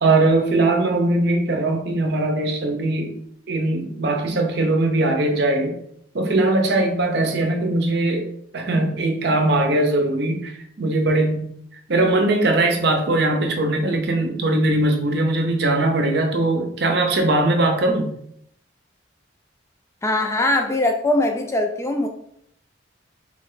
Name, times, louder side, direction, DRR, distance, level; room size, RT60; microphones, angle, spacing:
voice 1, 0.0-3.2 3.5-5.7 6.1-8.3 8.5-11.5 11.9-18.1, right 2 dB, 60° right, 4 dB, 0.7 m, -20 dB
voice 2, 20.0-22.1, left 1 dB, 15° left, 4 dB, 0.3 m, -21 dB
3.5 x 3.2 x 3.8 m, 0.70 s
head